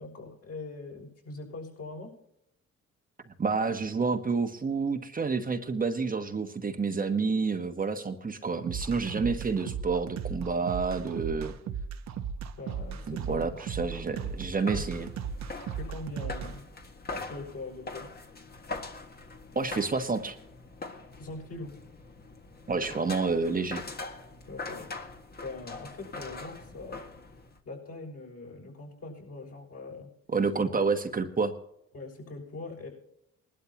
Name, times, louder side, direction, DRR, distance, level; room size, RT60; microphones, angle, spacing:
voice 1, 0.0-2.1 12.6-13.9 14.7-14.8 15.8-16.6 17.3-18.1 21.2-21.7 24.4-24.9 25.4-27.0 27.6-30.1 30.7-30.8 31.9-32.9, left 3 dB, 55° left, 0 dB, 6.4 m, -42 dB
voice 2, 3.4-11.5 13.1-15.1 19.5-20.4 22.7-23.8 30.3-31.5, right 4 dB, 30° right, 5 dB, 1.2 m, -29 dB
sound 1, 8.7-16.5, right 6 dB, 65° right, 1.1 m, -36 dB
sound 2, 12.7-27.6, left 3 dB, 30° left, 1.7 m, -43 dB
20.0 x 12.0 x 2.9 m, 0.75 s
cardioid pair, 90°, 30 cm